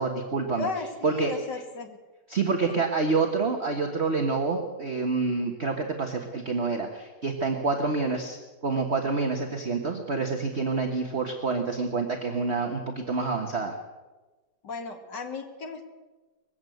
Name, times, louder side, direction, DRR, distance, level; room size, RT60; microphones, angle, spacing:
voice 1, 0.0-0.7 1.0-1.3 2.3-8.4 8.6-13.8, right 4 dB, 40° right, 2 dB, 1.7 m, -27 dB
voice 2, 0.5-2.0 2.6-2.7 14.6-15.9, left 4 dB, 75° left, 4 dB, 2.8 m, -35 dB
21.0 x 16.0 x 7.9 m, 1.2 s
omnidirectional pair, 1.9 m